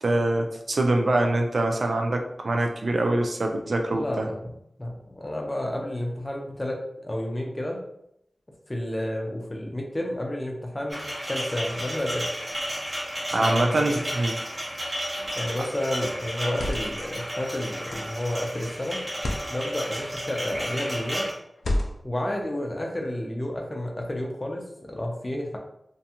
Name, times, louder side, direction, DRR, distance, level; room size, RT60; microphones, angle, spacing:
voice 1, 0.0-4.3 13.3-14.3, right 2 dB, 70° right, 3 dB, 0.3 m, -24 dB
voice 2, 3.9-7.8 8.7-11.0 11.3-12.3 13.4-14.0 15.4-19.0 19.5-21.3 22.0-25.6, left 1 dB, 30° left, 0 dB, 0.6 m, -31 dB
sound 1, 10.9-21.3, equal, 30° right, 0.7 m, -32 dB
sound 2, 15.2-15.5 16.3-17.1 17.9-18.2 19.1-19.5 20.4-20.8 21.6-22.2, left 1 dB, 90° left, 0.3 m, -31 dB
2.6 x 2.3 x 2.8 m, 0.78 s
wide cardioid pair, 75°, 0 cm